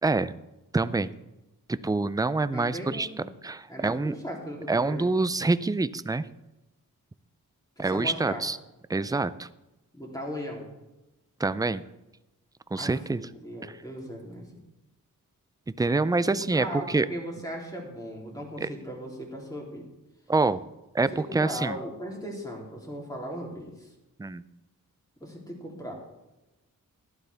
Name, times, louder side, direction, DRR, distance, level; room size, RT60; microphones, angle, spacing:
voice 1, 0.0-0.3 0.7-1.1 1.7-3.1 3.4-4.2 4.7-6.3 7.8-8.6 8.9-9.5 11.4-11.8 12.7-13.2 13.6-13.8 15.8-17.1 18.6-18.7 20.3-20.6 20.9-21.8 24.2-24.4, right 3 dB, 10° right, 15 dB, 0.4 m, -26 dB
voice 2, 2.5-3.3 3.7-5.1 7.8-8.4 9.9-10.7 12.8-14.6 16.4-19.8 21.1-23.9 25.2-25.9, equal, 10° left, -2 dB, 3.1 m, -38 dB
11.5 x 11.5 x 3.4 m, 1.0 s
wide cardioid pair, 85°, 34 cm